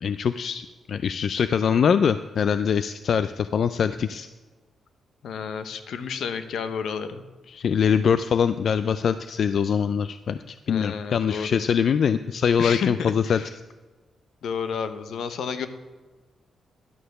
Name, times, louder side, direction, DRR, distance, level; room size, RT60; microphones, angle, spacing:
voice 1, 0.0-4.3 7.5-13.4, left 7 dB, 55° left, 12 dB, 0.3 m, -23 dB
voice 2, 5.2-7.2 10.7-11.6 12.6-13.5 14.4-15.7, left 6 dB, 75° left, 10 dB, 0.8 m, -31 dB
11.0 x 6.6 x 6.7 m, 1.3 s
wide cardioid pair, 145°, 0 cm